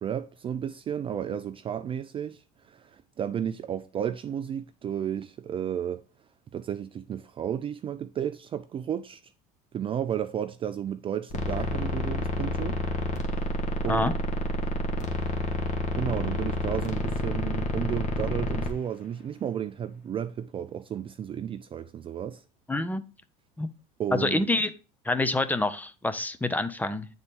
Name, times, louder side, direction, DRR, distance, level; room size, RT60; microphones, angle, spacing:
voice 1, 0.0-6.0 6.5-9.2 9.7-12.8 13.8-14.1 16.0-22.4 24.0-24.5, right 9 dB, 30° right, 0.3 m, -33 dB
sound 1, 11.3-18.7, left 1 dB, 40° left, 1.3 m, -29 dB
voice 2, 22.7-23.0 23.6-23.7 24.1-24.7 25.0-27.1, left 2 dB, 10° left, 0.6 m, -27 dB
8.6 x 4.0 x 3.6 m
supercardioid pair, 95°, 19 cm